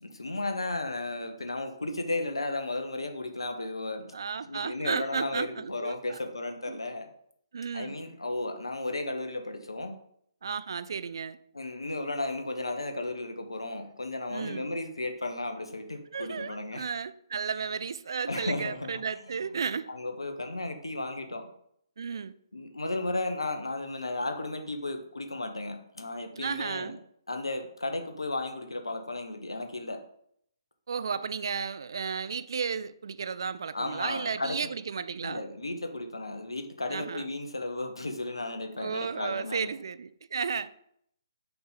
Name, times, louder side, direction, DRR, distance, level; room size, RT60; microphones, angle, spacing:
voice 1, 0.0-4.1 4.5-7.1 7.7-10.0 11.5-16.9 18.3-18.9 19.9-21.5 22.5-27.0 27.3-30.0 33.7-34.6 35.2-39.7, left 2 dB, 75° left, 0.9 m, -34 dB
voice 2, 4.1-6.2 6.7-6.8 7.5-8.0 10.4-11.4 14.3-14.7 16.1-19.9 22.0-22.3 26.4-27.0 30.9-35.5 36.9-37.3 38.8-40.8, right 6 dB, 55° right, 0.4 m, -33 dB
5.8 x 3.6 x 5.5 m
figure-of-eight pair, 135°, 3 cm